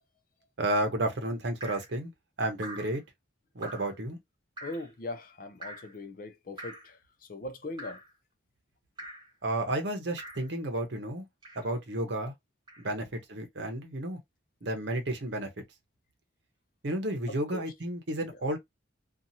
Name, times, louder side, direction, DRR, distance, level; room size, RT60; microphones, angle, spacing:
voice 1, 0.6-2.1 2.4-3.0 3.5-4.2 9.4-11.2 11.6-12.3 12.8-14.2 14.6-15.5 16.8-18.6, right 1 dB, 60° right, 0.8 m, -32 dB
Drip, 1.6-1.9 2.6-3.0 3.6-4.0 4.6-4.9 5.6-6.0 6.6-6.9 7.8-8.1 9.0-9.3 10.2-10.5 11.4-11.8 12.7-12.9, right 1 dB, 20° right, 1.0 m, -44 dB
voice 2, 4.6-8.0 17.3-17.6 18.3-18.4, left 2 dB, 45° left, 0.5 m, -40 dB
2.8 x 2.4 x 2.6 m
head